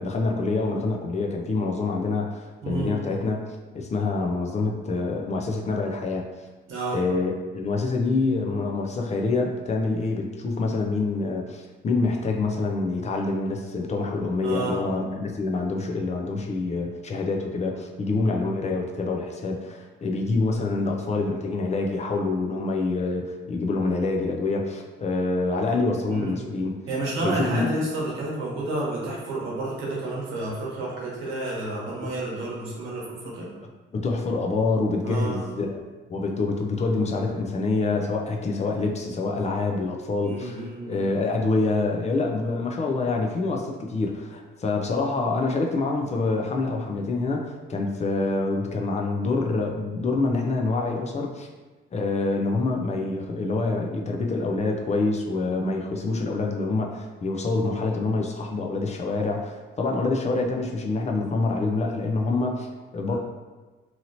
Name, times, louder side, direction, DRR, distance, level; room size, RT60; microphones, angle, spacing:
voice 1, 0.0-3.4 3.7-6.2 6.9-26.8 27.2-27.7 32.0-32.1 33.9-35.8 36.1-51.5 51.9-62.7 62.9-63.2, left 3 dB, 35° left, 1 dB, 0.5 m, -26 dB
voice 2, 2.6-2.9 6.7-7.0 14.4-14.8 26.1-26.4 26.9-33.5 35.0-35.5 40.2-41.0 63.1-63.2, right 2 dB, 80° right, -4 dB, 1.0 m, -30 dB
2.8 x 2.8 x 2.7 m, 1.3 s
cardioid pair, 90°, 20 cm